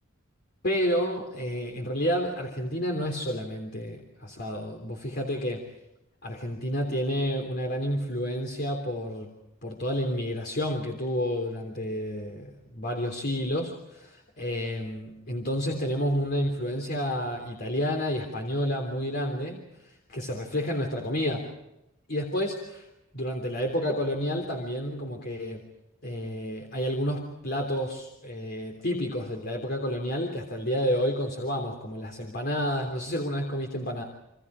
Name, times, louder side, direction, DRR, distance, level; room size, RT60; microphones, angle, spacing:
voice 1, 0.6-5.6 6.2-21.5 22.1-22.9 23.1-25.6 26.0-34.0, equal, 50° left, 2 dB, 3.5 m, -30 dB
29.0 x 25.5 x 5.0 m, 0.88 s
head